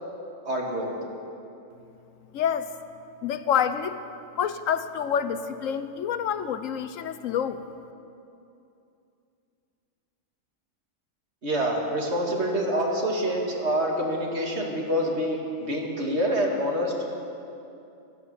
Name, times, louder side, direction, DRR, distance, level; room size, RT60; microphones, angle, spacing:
voice 1, 0.5-0.9 11.4-16.9, equal, 60° right, 0 dB, 2.4 m, -26 dB
voice 2, 2.3-2.7 3.2-4.0 4.4-7.6, left 8 dB, 85° left, 11 dB, 1.1 m, -27 dB
16.0 x 12.0 x 7.0 m, 2.7 s
omnidirectional pair, 1.3 m